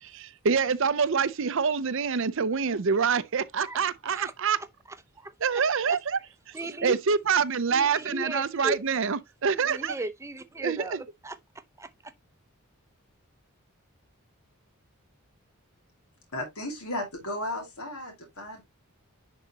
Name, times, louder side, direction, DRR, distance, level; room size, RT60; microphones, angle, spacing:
voice 1, 0.0-4.6 5.4-6.2 6.8-9.9 10.6-11.0, right 6 dB, 60° right, 0.6 m, -26 dB
voice 2, 4.1-4.7 5.2-6.0 6.5-7.0 7.7-8.8 9.5-12.1, right 1 dB, 15° right, 0.7 m, -37 dB
voice 3, 16.3-18.6, left 1 dB, 75° left, 2.5 m, -35 dB
10.5 x 4.0 x 2.9 m
head